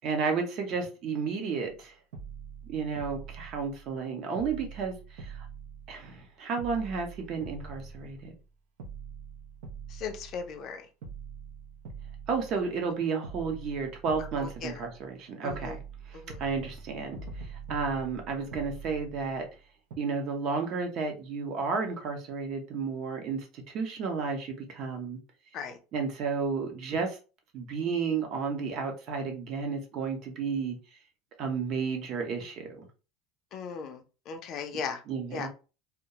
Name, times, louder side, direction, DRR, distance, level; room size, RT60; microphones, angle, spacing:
voice 1, 0.0-1.9 2.7-5.5 5.9-8.3 12.3-15.8 16.1-19.5 20.0-25.2 25.9-27.2 27.5-30.8 31.4-32.9 35.1-35.5, right 5 dB, 40° right, 0.7 m, -32 dB
sound 1, 1.7-1.8 2.1-4.0 4.4-6.3 6.6-8.4 8.8-10.7 11.0-12.9 13.2-15.1 15.5-19.6 19.9-20.0, right 5 dB, 85° right, 0.6 m, -44 dB
voice 2, 9.9-10.9 14.4-14.8 15.4-15.8 16.1-16.4 25.5-25.8 33.5-35.0 35.3-35.5, left 6 dB, 40° left, 0.4 m, -37 dB
2.3 x 2.1 x 2.7 m
supercardioid pair, 150°, 0 cm